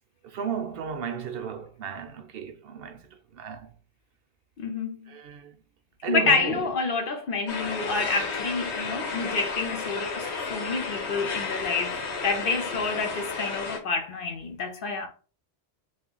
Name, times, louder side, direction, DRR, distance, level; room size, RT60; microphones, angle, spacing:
voice 1, 0.2-3.7 5.1-5.6 6.0-6.7, right 7 dB, 65° right, 0.7 m, -34 dB
voice 2, 4.6-5.1 6.1-15.1, left 4 dB, 55° left, 0.8 m, -28 dB
sound 1, 7.5-13.8, left 4 dB, 80° left, 1.0 m, -32 dB
3.4 x 2.4 x 3.8 m
omnidirectional pair, 1.1 m